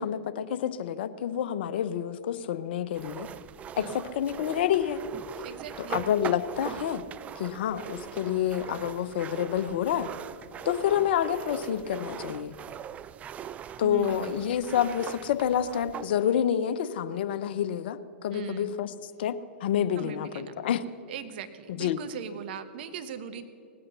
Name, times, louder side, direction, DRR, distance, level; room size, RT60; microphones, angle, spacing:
voice 1, 0.0-3.3 3.8-5.0 5.8-7.0 7.4-10.1 10.6-12.5 13.8-20.8 21.8-22.0, left 9 dB, 60° left, 13 dB, 0.7 m, -28 dB
sound 1, 2.9-16.1, right 8 dB, 20° right, 0.3 m, -41 dB
voice 2, 5.4-6.0 13.8-14.4 18.3-18.7 20.0-20.5 21.1-23.4, right 8 dB, 55° right, 10 dB, 1.1 m, -40 dB
18.5 x 8.6 x 6.7 m, 2.6 s
hypercardioid pair, 110°, 6 cm